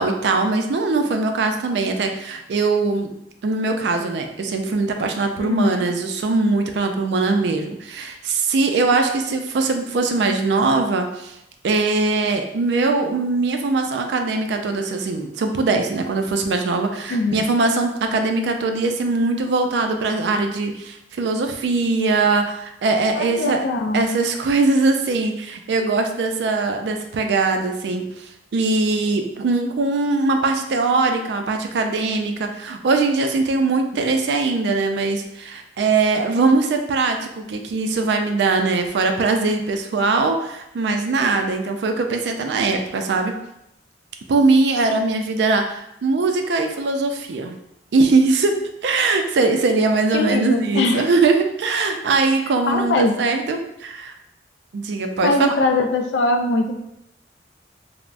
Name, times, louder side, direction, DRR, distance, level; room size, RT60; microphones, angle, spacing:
voice 1, 0.0-3.1 3.4-11.4 11.6-23.6 23.9-28.0 28.5-43.3 44.3-47.5 47.9-48.6 48.8-54.1 54.7-55.3, right 3 dB, 75° right, 5 dB, 0.4 m, -21 dB
voice 2, 5.4-5.9 17.1-17.5 23.2-24.1 50.1-51.1 52.7-53.2 55.2-56.8, left 2 dB, 90° left, 5 dB, 0.4 m, -21 dB
3.3 x 2.0 x 2.4 m, 0.81 s
head